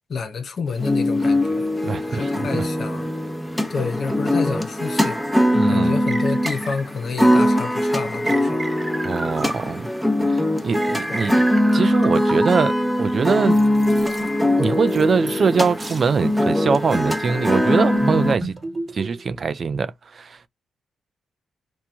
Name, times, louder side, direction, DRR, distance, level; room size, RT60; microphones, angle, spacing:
voice 1, 0.1-3.1 3.7-5.2 5.7-8.6 11.1-11.3, left 5 dB, 60° left, 0.6 m, -29 dB
sound 1, 0.8-18.4, left 1 dB, 5° left, 0.7 m, -21 dB
voice 2, 1.8-2.7 5.5-6.0 9.0-9.9 10.3-11.3 11.7-13.6 14.6-18.5 18.9-20.5, right 5 dB, 55° right, 0.4 m, -23 dB
sound 2, 6.1-7.1 8.3-10.0 10.8-12.8 13.5-14.3 14.9-15.5 15.8-16.1 16.6-16.8 17.4-19.4, right 2 dB, 25° right, 1.0 m, -32 dB
3.0 x 2.1 x 2.4 m
supercardioid pair, 55°, 0 cm